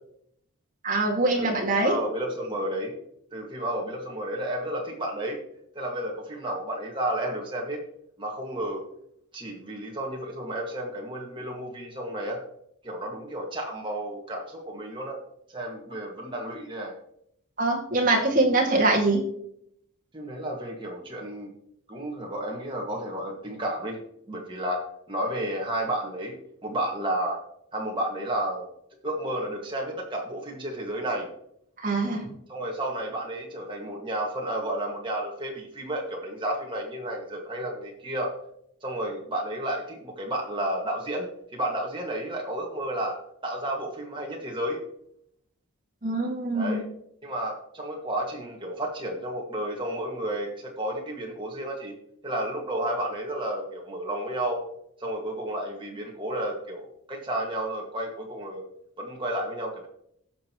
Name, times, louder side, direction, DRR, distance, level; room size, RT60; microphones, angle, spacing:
voice 1, 0.8-2.0 17.6-19.2 31.8-32.3 46.0-46.8, right 2 dB, 40° right, -1 dB, 2.1 m, -23 dB
voice 2, 1.8-2.9 3.3-5.4 5.8-7.8 8.2-8.8 9.3-12.4 12.8-15.2 15.5-17.0 20.1-21.5 21.9-24.0 24.3-26.4 26.6-27.4 27.7-28.7 29.0-31.3 32.5-38.3 38.8-41.3 41.5-43.2 43.4-44.8 46.5-46.8 47.2-52.0 52.2-54.6 55.0-58.6 59.0-59.9, right 1 dB, 20° right, -1 dB, 1.9 m, -32 dB
17.0 x 6.5 x 3.1 m, 0.73 s
head